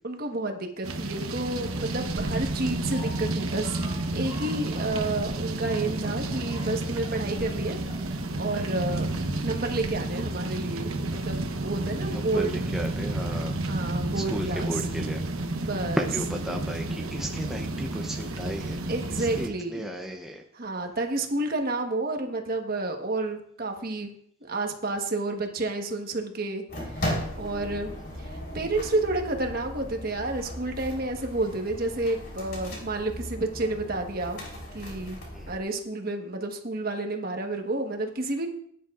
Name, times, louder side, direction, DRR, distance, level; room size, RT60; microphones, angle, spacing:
voice 1, 0.0-3.8 4.1-7.8 8.3-9.1 9.4-12.6 13.7-14.8 15.6-16.1 18.9-19.9 20.5-24.1 24.5-26.6 27.0-27.9 28.2-34.4 34.7-35.2 35.5-38.5, right 2 dB, 45° right, 3 dB, 1.3 m, -30 dB
sound 1, 0.8-19.5, right 2 dB, 85° right, 1.0 m, -31 dB
sound 2, 2.9-12.1, left 1 dB, 30° left, 4.9 m, -48 dB
voice 2, 12.1-15.2 16.0-20.4 35.3-35.6, equal, ahead, 1 dB, 0.6 m, -35 dB
sound 3, 26.7-35.6, equal, 50° left, 3.9 m, -37 dB
17.5 x 10.0 x 2.5 m, 0.66 s
head